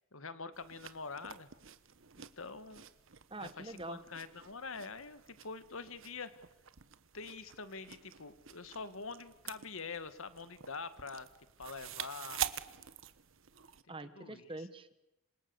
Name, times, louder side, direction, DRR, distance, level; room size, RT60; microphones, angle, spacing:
voice 1, 0.0-1.5 2.2-2.9 3.4-6.3 7.1-11.3 11.6-12.5 14.2-14.5, left 4 dB, 70° left, 12 dB, 1.7 m, -45 dB
sound 1, 0.5-13.8, right 9 dB, 65° right, 1.3 m, -47 dB
voice 2, 3.3-4.0 13.9-14.9, right 2 dB, 25° right, 12 dB, 1.3 m, -45 dB
27.0 x 26.0 x 7.0 m, 0.95 s
head